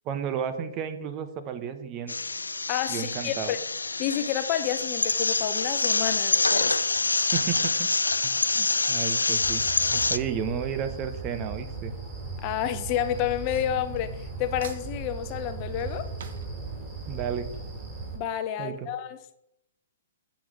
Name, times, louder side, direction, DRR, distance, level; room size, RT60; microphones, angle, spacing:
voice 1, 0.0-2.1 2.9-3.5 7.2-7.7 8.2-11.9 17.1-17.5 18.6-18.9, right 8 dB, 30° right, 1.0 m, -33 dB
sound 1, 2.1-10.2, left 3 dB, 85° left, 0.4 m, -26 dB
voice 2, 2.7-3.6 4.0-6.8 12.4-16.1 18.1-19.2, left 10 dB, 35° left, 0.7 m, -30 dB
Drawer open or close / Cutlery silverware, 4.6-5.0 5.8-11.7 12.0-14.4 14.6-17.1 17.6-17.7 17.9-18.0, right 6 dB, 60° right, 1.1 m, -51 dB
sound 2, 9.4-18.2, right 3 dB, 10° right, 3.2 m, -37 dB
8.3 x 6.2 x 4.9 m
figure-of-eight pair, 125°, 0 cm